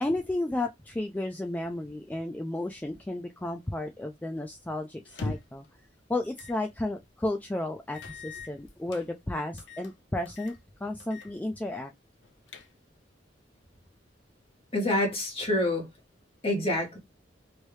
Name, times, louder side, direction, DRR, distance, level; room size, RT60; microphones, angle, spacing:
voice 1, 0.0-5.6 6.1-10.6 10.8-11.9, left 1 dB, 10° left, 0.3 m, -33 dB
sound 1, 5.1-5.7 6.4-6.6 7.0-7.1 7.9-9.1 9.6-9.9 10.3-10.6 11.0-11.3 11.6-11.7 12.2-13.0, left 3 dB, 80° left, 0.6 m, -40 dB
voice 2, 14.7-15.9 16.4-17.0, left 1 dB, 35° left, 1.6 m, -27 dB
3.1 x 2.7 x 3.1 m
head